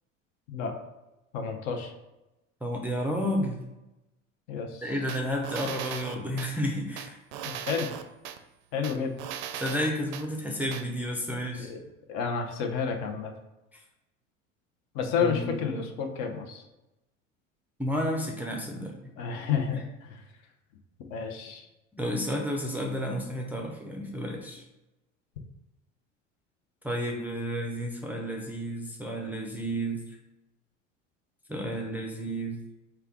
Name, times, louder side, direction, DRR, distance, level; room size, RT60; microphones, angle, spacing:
voice 1, 1.3-1.9 4.5-5.0 7.4-7.9 8.7-9.1 11.6-11.8 12.1-13.3 14.9-16.6 19.2-20.2 21.1-21.7, left 6 dB, 55° left, 4 dB, 0.7 m, -30 dB
voice 2, 2.6-3.6 4.8-7.2 9.6-11.7 13.7-13.8 15.2-15.8 17.8-19.0 21.9-24.6 26.8-30.0 31.5-32.6, equal, 5° right, -1 dB, 0.4 m, -31 dB
sound 1, 5.1-6.5 7.0-8.4 8.8-10.3 10.7-10.8, right 10 dB, 60° right, 0.4 m, -38 dB
3.3 x 2.3 x 3.6 m, 0.98 s
hypercardioid pair, 75°, 37 cm